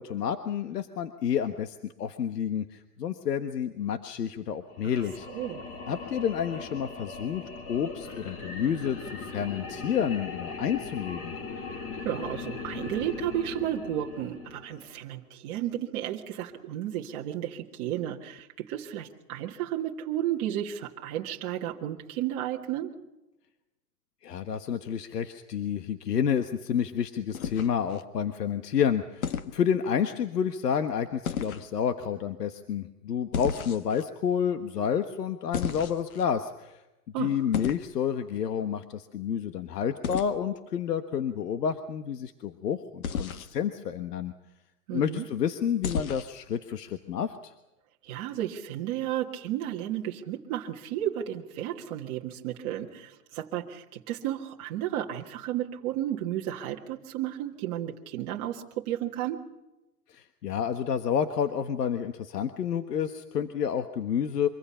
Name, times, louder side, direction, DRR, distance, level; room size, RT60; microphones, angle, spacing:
voice 1, 0.0-5.3 5.8-11.3 24.2-36.8 37.2-44.3 44.9-47.5 60.1-64.5, left 8 dB, 80° left, 8 dB, 1.5 m, -29 dB
sound 1, 4.7-15.0, left 4 dB, 20° left, 1.5 m, -39 dB
voice 2, 5.3-5.6 12.0-22.9 37.1-37.4 44.9-45.2 48.0-59.4, right 12 dB, 20° right, 0 dB, 1.5 m, -33 dB
sound 2, 27.3-28.0 29.2-29.6 31.2-31.7 33.3-34.0 35.5-36.2 37.5-37.9 40.0-40.3 43.0-43.5 45.8-46.4, left 7 dB, 60° left, 1.6 m, -33 dB
24.5 x 24.5 x 5.7 m, 0.99 s
hypercardioid pair, 170°, 47 cm